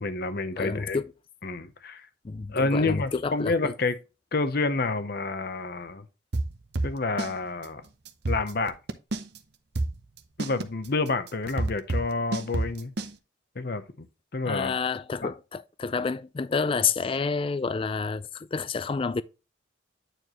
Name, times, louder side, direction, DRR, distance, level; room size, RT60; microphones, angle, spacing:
voice 1, 0.0-1.0 1.4-2.1 2.5-3.9 4.3-6.1 6.8-7.9 8.3-8.7 10.4-12.9 13.6-14.1 14.3-14.7 15.2-15.3, left 3 dB, 50° left, 0.7 m, -28 dB
voice 2, 0.6-1.1 2.2-3.7 14.4-19.2, left 5 dB, 25° left, 0.3 m, -29 dB
sound 1, 6.3-7.3 7.6-7.7 8.1-9.4 9.7-13.1, right 2 dB, 55° right, 0.7 m, -29 dB
9.1 x 4.6 x 3.0 m
head